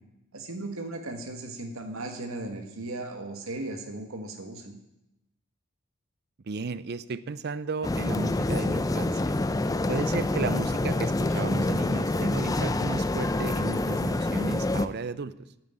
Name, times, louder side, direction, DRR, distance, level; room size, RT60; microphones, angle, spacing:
voice 1, 0.3-4.7, right 2 dB, 80° right, 4 dB, 1.7 m, -36 dB
voice 2, 6.5-9.4 9.9-15.3, right 4 dB, 55° right, 16 dB, 0.5 m, -34 dB
sound 1, 7.8-14.9, left 2 dB, 15° left, 0.5 m, -27 dB
9.6 x 9.6 x 8.9 m, 0.90 s
head